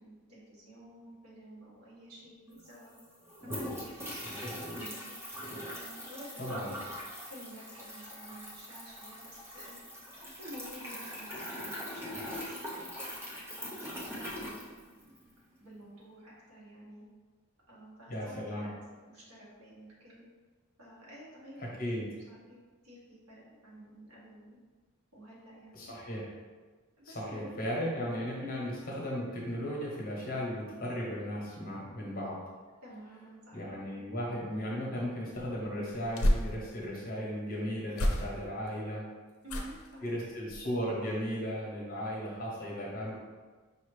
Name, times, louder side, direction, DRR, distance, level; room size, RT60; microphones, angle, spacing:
voice 1, 0.0-3.0 3.4-5.1 5.8-6.9 7.3-9.8 10.2-12.9 13.2-15.1 15.6-17.0 17.7-18.8 19.1-20.3 20.8-22.6 22.8-24.6 25.1-25.9 27.0-27.5 28.4-28.6 32.8-34.0 39.4-40.1, equal, 80° right, -6 dB, 1.4 m, -51 dB
sound 1, 2.2-2.3 2.5-15.3, equal, 10° right, 0.6 m, -42 dB
voice 2, 4.1-4.5 6.4-6.7 18.1-18.7 21.8-22.1 25.7-26.3 27.0-32.4 33.5-39.0 40.0-43.1, equal, 40° left, -4 dB, 1.0 m, -36 dB
sound 2, 35.3-37.0 37.9-38.7 39.4-40.0 40.4-40.8 41.1-41.2, equal, 70° left, 0.5 m, -32 dB
5.2 x 2.8 x 3.2 m, 1.4 s
head